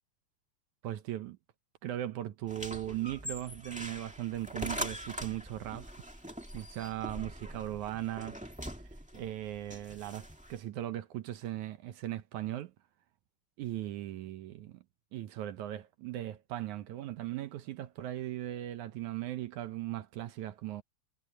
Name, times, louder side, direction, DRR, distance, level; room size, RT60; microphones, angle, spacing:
voice 1, 0.8-1.4 1.8-5.9 6.5-8.5 9.1-12.7 13.6-14.8 15.1-20.8, right 13 dB, 70° right, 2.0 m, -38 dB
sound 1, 2.5-10.6, equal, 5° right, 1.1 m, -43 dB
omnidirectional pair, 4.0 m